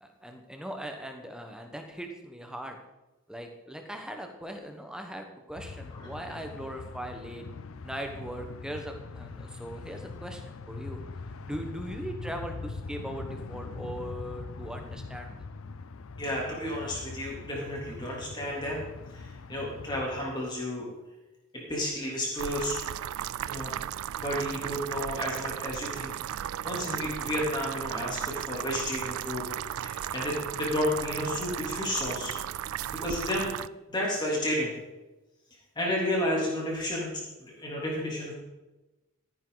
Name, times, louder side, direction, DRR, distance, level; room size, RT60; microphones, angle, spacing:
voice 1, 0.0-2.8 3.3-7.4 7.8-11.0 11.4-15.4, right 1 dB, 5° right, 4 dB, 1.2 m, -40 dB
sound 1, 5.5-20.2, left 4 dB, 70° left, 0.5 m, -42 dB
voice 2, 16.2-18.8 19.1-20.9 21.5-22.8 23.5-23.7 24.1-29.5 29.8-32.3 33.0-34.7 35.7-37.1 37.4-38.3, left 1 dB, 20° left, -3 dB, 3.3 m, -32 dB
sound 2, 22.4-33.7, right 10 dB, 75° right, 0.3 m, -35 dB
15.0 x 9.8 x 4.1 m, 1.1 s
head